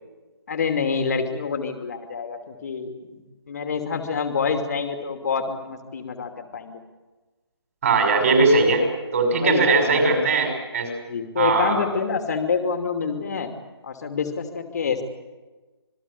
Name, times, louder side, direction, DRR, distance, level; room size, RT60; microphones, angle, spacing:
voice 1, 0.5-3.2 3.5-6.8 9.4-10.2 11.1-13.5 13.8-15.0, left 5 dB, 40° left, 6 dB, 2.8 m, -27 dB
voice 2, 7.8-8.8 9.1-10.9 11.4-11.8, right 3 dB, 35° right, 4 dB, 6.0 m, -19 dB
27.0 x 21.5 x 8.4 m, 1.2 s
figure-of-eight pair, 155°, 14 cm